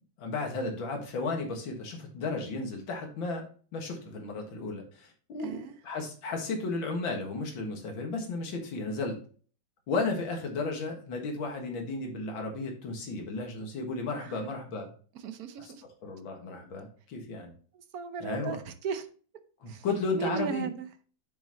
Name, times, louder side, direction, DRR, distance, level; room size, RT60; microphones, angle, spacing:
voice 1, 0.2-3.4 3.7-9.2 9.9-14.9 16.0-17.5 18.2-18.6 19.6-20.7, left 3 dB, 85° left, 3 dB, 2.4 m, -34 dB
voice 2, 5.4-5.8 14.2-14.4 15.1-15.8 17.7-19.1 19.7-19.8 20.1-20.9, right 6 dB, 60° right, 10 dB, 1.1 m, -36 dB
8.9 x 6.6 x 2.9 m, 0.42 s
omnidirectional pair, 2.1 m